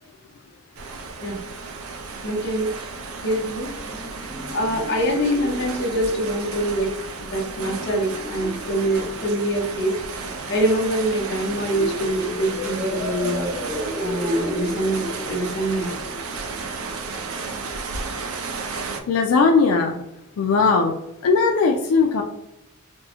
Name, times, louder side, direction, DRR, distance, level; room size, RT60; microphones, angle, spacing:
sound 1, 0.8-19.0, right 4 dB, 85° right, 0.4 m, -33 dB
voice 1, 2.2-2.7 3.2-3.7 4.5-6.9 7.2-10.0 10.5-13.5 14.0-15.9, right 1 dB, 55° left, 1 dB, 0.7 m, -24 dB
sound 2, 3.8-17.4, equal, ahead, 0.3 m, -34 dB
voice 2, 19.1-20.0 20.4-20.9 21.2-22.2, left 4 dB, 85° left, 2 dB, 0.4 m, -18 dB
3.5 x 2.0 x 2.8 m, 0.83 s
head